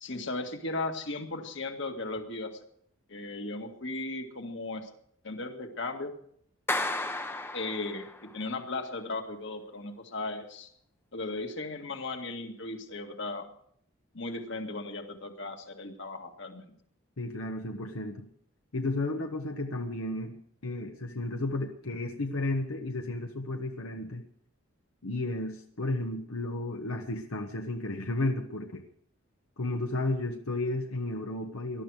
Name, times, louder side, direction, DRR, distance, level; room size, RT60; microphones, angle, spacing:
voice 1, 0.0-2.5 3.1-4.9 5.2-6.1 7.5-10.7 11.1-13.4 14.1-16.7, left 2 dB, 55° left, 4 dB, 1.9 m, -36 dB
Clapping, 6.7-8.3, left 2 dB, 10° left, 0.8 m, -33 dB
voice 2, 17.2-18.3 18.7-20.4 20.6-24.2 25.0-28.8 29.6-31.8, left 2 dB, 80° left, 3 dB, 1.3 m, -33 dB
19.0 x 12.0 x 4.9 m, 0.66 s
head